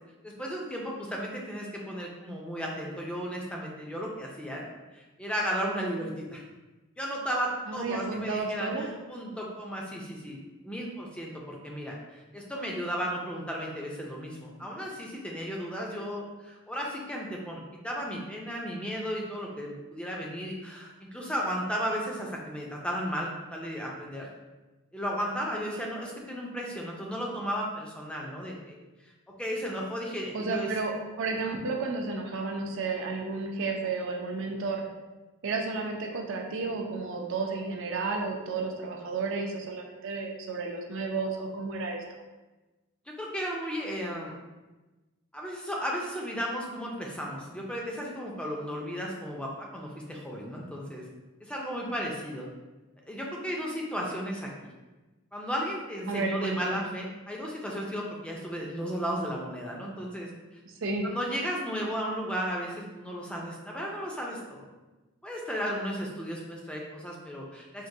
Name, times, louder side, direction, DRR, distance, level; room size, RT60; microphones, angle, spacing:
voice 1, 0.2-4.7 4.9-6.4 7.0-10.4 10.6-24.3 24.9-28.7 29.4-30.7 43.1-44.3 45.3-51.0 51.4-52.5 53.1-54.7 55.3-60.3 61.0-64.6 65.2-67.9, equal, 5° left, -2 dB, 0.4 m, -34 dB
voice 2, 7.7-8.9 30.3-34.8 35.4-42.0 56.1-56.8 60.8-61.0, right 3 dB, 60° right, 1 dB, 0.5 m, -32 dB
4.5 x 2.2 x 2.7 m, 1.1 s
head